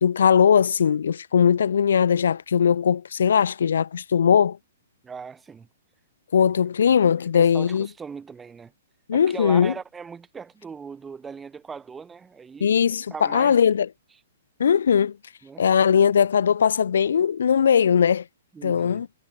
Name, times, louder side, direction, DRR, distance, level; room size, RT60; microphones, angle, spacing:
voice 1, 0.0-4.6 6.3-7.9 9.1-9.7 12.6-13.9 14.6-15.1 15.6-18.2 18.6-19.1, left 7 dB, 75° left, 0.3 m, -19 dB
voice 2, 5.0-5.7 7.2-8.7 9.1-12.7 13.1-13.6 15.4-15.7 18.5-19.1, right 5 dB, 10° right, 1.9 m, -39 dB
hypercardioid pair, 170°, 0 cm